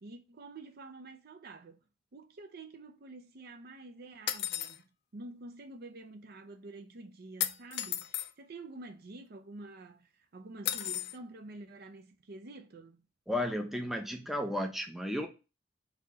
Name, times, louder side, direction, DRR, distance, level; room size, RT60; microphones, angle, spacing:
voice 1, 0.0-1.8 2.1-13.0, right 2 dB, 55° right, 0.5 m, -48 dB
sound 1, 4.3-4.8 7.4-8.3 10.7-11.2, left 12 dB, 55° left, 0.4 m, -34 dB
voice 2, 13.3-15.3, left 1 dB, ahead, 0.5 m, -33 dB
4.1 x 2.8 x 4.1 m
head